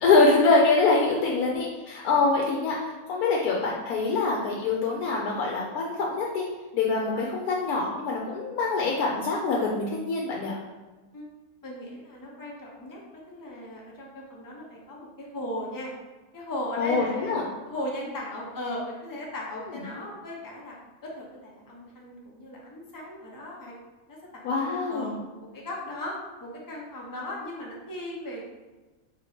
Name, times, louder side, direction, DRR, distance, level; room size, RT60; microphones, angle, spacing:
voice 1, 0.0-6.5 6.7-10.6 16.8-17.4 24.4-25.2, left 3 dB, 80° left, -2 dB, 1.1 m, -24 dB
voice 2, 11.6-15.9 16.3-17.3 17.6-20.8 21.0-23.7 24.0-25.1 25.5-28.4, left 1 dB, 30° left, -3 dB, 0.3 m, -37 dB
3.2 x 2.8 x 4.1 m, 1.2 s
omnidirectional pair, 1.6 m